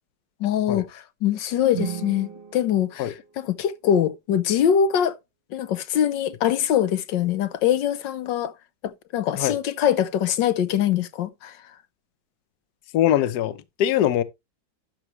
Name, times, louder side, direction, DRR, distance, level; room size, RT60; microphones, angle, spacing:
voice 1, 0.4-5.2 5.5-8.5 8.8-11.6, left 9 dB, 85° left, 1.5 m, -23 dB
sound 1, 1.6-3.9, right 10 dB, 40° right, 1.1 m, -36 dB
voice 2, 12.9-13.5 13.8-14.2, left 11 dB, 65° left, 1.3 m, -21 dB
12.0 x 6.1 x 3.1 m
omnidirectional pair, 1.9 m